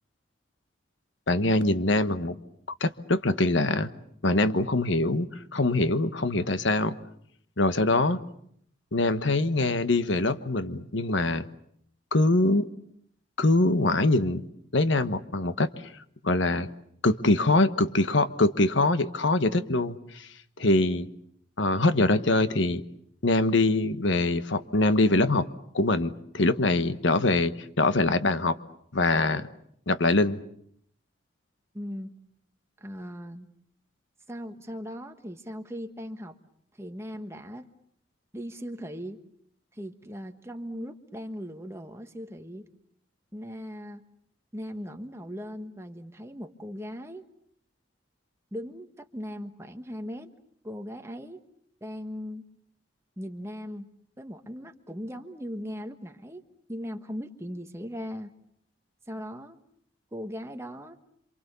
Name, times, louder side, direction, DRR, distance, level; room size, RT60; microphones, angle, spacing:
voice 1, 1.3-2.4 2.8-3.9 4.2-5.3 5.5-7.0 7.6-8.2 8.9-11.5 12.1-12.7 13.4-14.5 14.7-15.7 16.2-16.7 17.0-20.3 20.6-21.1 21.6-22.8 23.2-25.5 25.7-28.6 28.9-29.5 29.9-30.4, left 2 dB, 70° left, 12 dB, 1.3 m, -23 dB
voice 2, 31.7-32.2 32.8-33.5 34.3-36.4 36.8-37.7 38.3-39.2 39.7-42.7 43.3-44.0 44.5-47.2 48.5-50.3 50.6-51.4 51.8-52.4 53.2-53.9 54.2-56.4 56.7-58.3 59.1-59.6 60.1-61.0, equal, 15° right, 6 dB, 1.4 m, -38 dB
28.0 x 26.0 x 7.0 m, 0.68 s
head